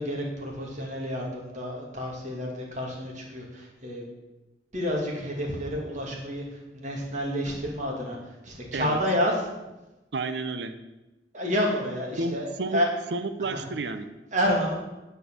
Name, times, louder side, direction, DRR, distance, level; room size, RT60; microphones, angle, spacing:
voice 1, 0.0-4.0 4.7-9.5 11.3-12.9 13.4-13.6 14.3-14.7, equal, 45° right, -1 dB, 2.3 m, -29 dB
voice 2, 10.1-10.8 12.2-12.8 13.1-14.1, right 3 dB, 75° right, 10 dB, 0.6 m, -31 dB
10.0 x 4.6 x 7.5 m, 1.0 s
head